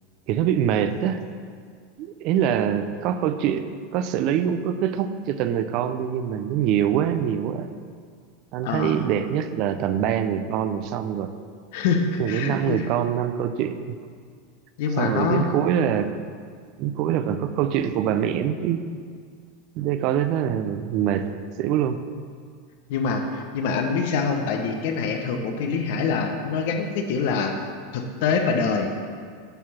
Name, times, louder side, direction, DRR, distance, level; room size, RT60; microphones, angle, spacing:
voice 1, 0.3-1.2 2.0-7.7 8.5-11.3 12.2-13.9 15.0-16.1 16.8-18.8 19.8-21.3 21.6-22.0, right 9 dB, 55° right, 10 dB, 0.6 m, -24 dB
voice 2, 8.6-9.0 11.7-12.9 14.8-15.4 22.9-27.5 27.9-28.9, left 5 dB, 65° left, 4 dB, 1.1 m, -25 dB
10.5 x 4.7 x 5.8 m, 2.1 s
hypercardioid pair, 100°, 0 cm